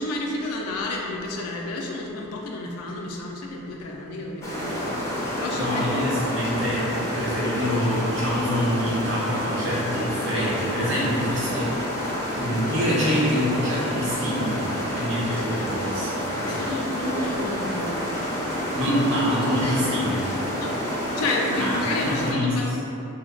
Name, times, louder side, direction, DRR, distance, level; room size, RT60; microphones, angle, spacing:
voice 1, 0.0-5.8 16.4-18.5 20.6-20.8 21.2-22.7, left 2 dB, 85° left, -1 dB, 0.4 m, -31 dB
sound 1, 4.4-22.3, equal, 15° left, 0.5 m, -28 dB
voice 2, 5.6-14.7 15.0-16.6 18.8-20.3 21.6-22.8, equal, 60° right, -7 dB, 0.9 m, -26 dB
3.2 x 2.1 x 3.7 m, 2.8 s
head